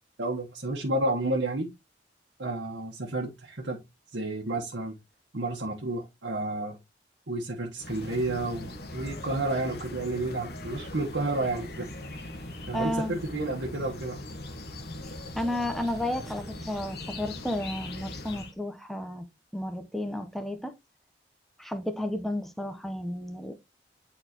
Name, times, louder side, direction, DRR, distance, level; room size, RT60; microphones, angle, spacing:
voice 1, 0.2-1.7 2.4-3.8 4.1-5.0 5.3-6.8 7.3-11.9 12.7-14.2, right 2 dB, 80° right, 1.3 m, -31 dB
sound 1, 7.8-18.5, left 1 dB, 60° left, 1.3 m, -40 dB
voice 2, 12.7-13.1 15.3-19.3 19.5-20.7 21.6-23.5, left 1 dB, ahead, 0.9 m, -32 dB
8.7 x 4.2 x 3.0 m
head